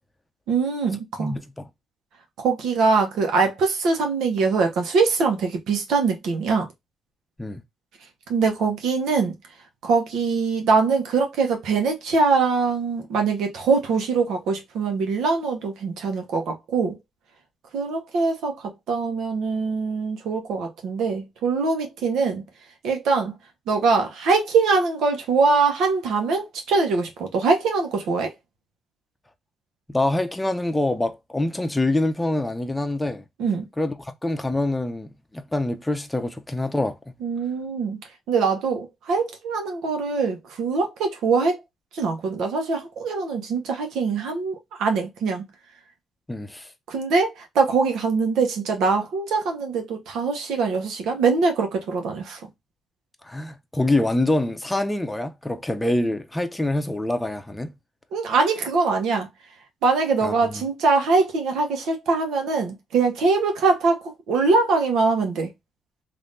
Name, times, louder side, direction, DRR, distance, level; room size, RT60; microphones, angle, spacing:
voice 1, 0.5-1.3 2.4-6.7 8.3-9.4 9.8-16.9 17.7-22.4 22.8-23.4 23.7-28.3 33.4-33.7 37.2-38.0 38.3-41.6 41.9-45.4 46.9-52.4 58.1-59.3 59.8-65.5, right 4 dB, 80° right, 1.0 m, -23 dB
voice 2, 1.2-1.7 7.4-7.6 29.9-33.2 33.8-33.9 34.2-37.0 46.3-46.7 53.2-57.7 60.2-60.6, left 2 dB, 10° left, 0.7 m, -25 dB
3.3 x 2.6 x 2.6 m
cardioid pair, 90°, 0 cm